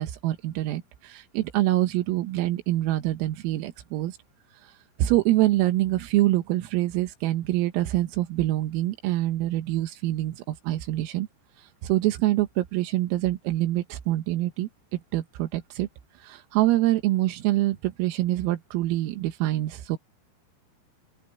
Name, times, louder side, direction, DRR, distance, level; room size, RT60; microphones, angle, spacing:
voice 1, 0.0-4.2 4.6-4.7 5.0-11.3 11.8-15.9 16.2-20.0, right 16 dB, 85° right, 4.0 m, -25 dB
open air
omnidirectional pair, 5.9 m